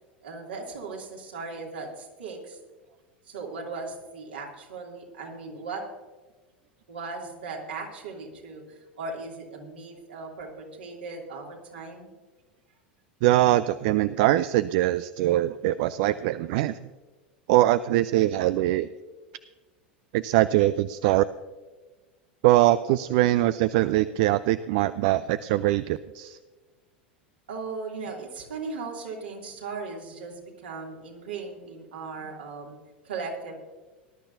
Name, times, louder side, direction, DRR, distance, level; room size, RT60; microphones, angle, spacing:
voice 1, 0.2-2.6 3.2-5.8 6.9-12.1 27.5-32.8 33.0-33.5, right 4 dB, 75° right, -1 dB, 2.8 m, -37 dB
voice 2, 13.2-16.8 17.5-18.9 20.1-21.2 22.4-26.4, right 15 dB, 55° right, 15 dB, 0.4 m, -22 dB
19.5 x 11.5 x 2.7 m, 1.3 s
figure-of-eight pair, 85°, 6 cm